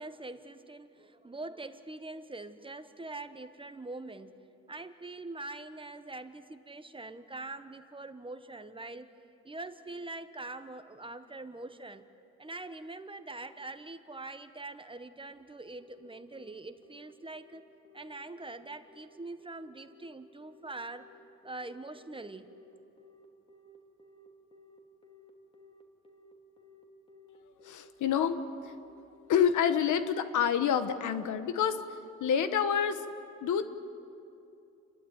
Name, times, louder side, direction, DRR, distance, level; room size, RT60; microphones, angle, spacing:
voice 1, 0.0-4.4 4.7-9.1 9.4-12.1 12.4-17.7 17.9-21.1 21.4-22.5, right 2 dB, 15° right, 10 dB, 1.1 m, -43 dB
Telephone, 15.8-32.0, left 3 dB, 20° left, 2.8 m, -59 dB
voice 2, 27.6-28.4 28.6-28.7 29.3-31.8 32.2-33.0 33.4-33.7, left 8 dB, 75° left, 10 dB, 1.3 m, -27 dB
29.5 x 12.5 x 9.6 m, 2.6 s
cardioid pair, 90°, 30 cm